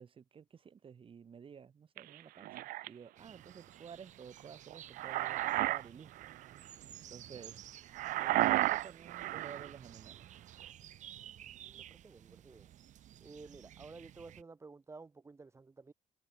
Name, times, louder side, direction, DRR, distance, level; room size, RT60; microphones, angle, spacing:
voice 1, 0.0-6.3 7.1-7.6 8.2-10.3, right 7 dB, 40° right, 5.4 m, -52 dB
sound 1, 2.0-2.9 4.7-5.8 6.2-6.4 7.9-9.7, right 17 dB, 85° right, 0.5 m, -32 dB
sound 2, 3.2-14.4, right 11 dB, 55° right, 1.0 m, -54 dB
voice 2, 11.6-12.7 13.2-15.9, right 3 dB, 20° right, 1.4 m, -53 dB
cardioid pair, 140°, 14 cm